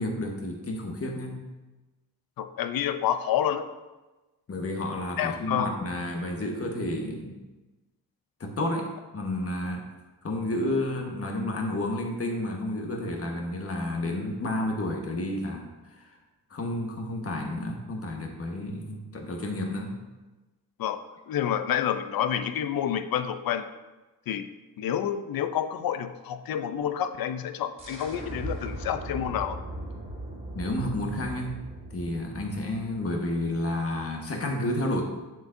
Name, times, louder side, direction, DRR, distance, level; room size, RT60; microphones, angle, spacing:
voice 1, 0.0-1.4 4.5-7.4 8.4-9.8 10.2-16.1 16.5-20.0 30.5-31.6 31.9-35.0, left 1 dB, 35° left, 2 dB, 1.4 m, -31 dB
voice 2, 2.4-3.7 5.2-5.7 20.8-21.0 21.3-23.7 24.3-24.4 24.8-29.6, left 9 dB, 65° left, 10 dB, 0.6 m, -28 dB
sound 1, 27.8-33.3, right 1 dB, 15° right, 2.3 m, -39 dB
7.8 x 7.3 x 2.6 m, 1.1 s
cardioid pair, 95°, 38 cm